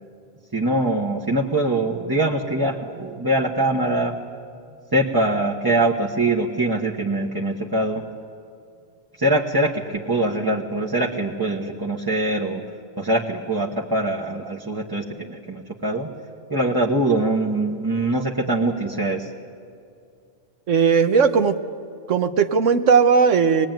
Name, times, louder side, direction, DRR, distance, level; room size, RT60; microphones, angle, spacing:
voice 1, 0.5-4.2 4.9-8.0 9.2-12.6 13.0-16.1 16.5-19.3, right 2 dB, 20° right, -2 dB, 1.3 m, -23 dB
voice 2, 20.7-21.6 22.1-23.7, right 6 dB, 80° right, 8 dB, 1.4 m, -17 dB
24.5 x 20.0 x 9.2 m, 2.4 s
omnidirectional pair, 1.3 m